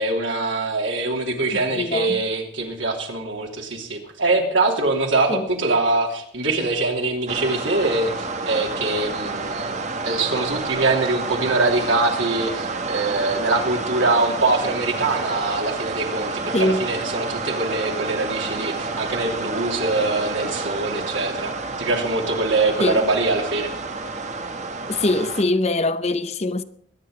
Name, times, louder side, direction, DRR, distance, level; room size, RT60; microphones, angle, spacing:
voice 1, 0.0-9.7 10.0-23.7, right 2 dB, 80° right, 2.9 m, -23 dB
voice 2, 1.5-2.2 5.3-5.5 16.5-16.8 22.8-23.0 24.9-26.6, left 2 dB, 35° left, 0.7 m, -23 dB
sound 1, 7.3-25.4, right 3 dB, 35° right, 1.3 m, -29 dB
22.0 x 9.3 x 4.9 m
head